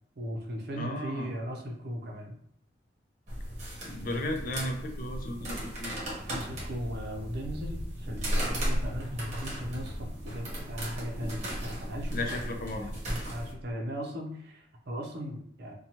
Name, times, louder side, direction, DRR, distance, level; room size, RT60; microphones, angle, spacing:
voice 1, 0.2-2.3 6.3-12.9 13.3-15.7, equal, 60° right, 1 dB, 0.6 m, -38 dB
voice 2, 0.7-1.3 3.8-5.9 12.1-12.9, left 1 dB, 50° left, 3 dB, 0.4 m, -35 dB
sound 1, 3.3-13.5, equal, 40° right, 1.0 m, -35 dB
sound 2, 8.6-13.7, equal, 30° left, 0.9 m, -45 dB
2.8 x 2.2 x 2.9 m, 0.67 s
head